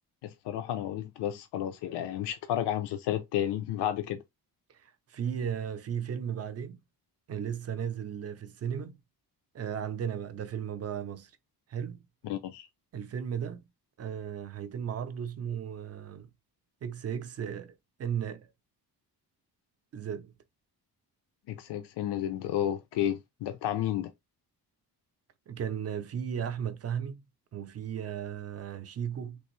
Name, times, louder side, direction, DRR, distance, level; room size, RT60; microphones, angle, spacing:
voice 1, 0.2-4.2 12.2-12.7 21.5-24.1, left 11 dB, 85° left, 0.5 m, -32 dB
voice 2, 4.7-6.8 7.3-9.0 9.5-11.3 11.7-12.1 12.9-13.7 14.0-16.3 16.8-18.5 19.9-20.3 25.5-27.2 27.5-29.4, right 8 dB, 40° right, 0.5 m, -35 dB
3.4 x 2.5 x 3.0 m
cardioid pair, 125°, 40 cm